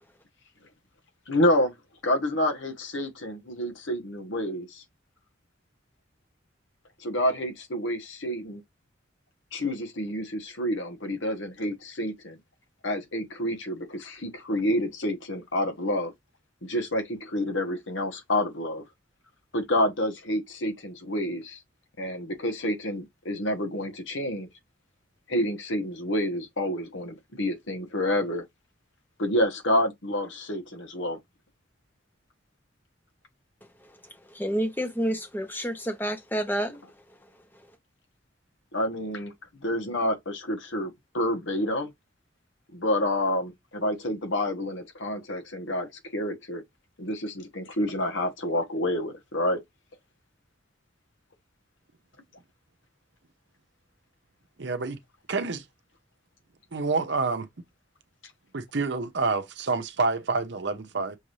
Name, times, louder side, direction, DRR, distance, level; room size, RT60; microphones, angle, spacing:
voice 1, 1.3-1.8 2.0-4.8 7.0-8.6 9.5-12.4 12.8-16.1 16.6-18.8 19.5-21.6 22.0-24.5 25.3-28.4 29.2-31.2 38.7-41.9 42.7-46.6 47.0-49.6, left 1 dB, 80° left, 1.3 m, -28 dB
voice 2, 34.3-36.8, equal, 10° left, 0.9 m, -29 dB
voice 3, 54.6-55.0 55.3-55.6 56.7-57.5 58.5-61.2, right 4 dB, 65° right, 0.7 m, -28 dB
6.2 x 2.6 x 3.1 m
head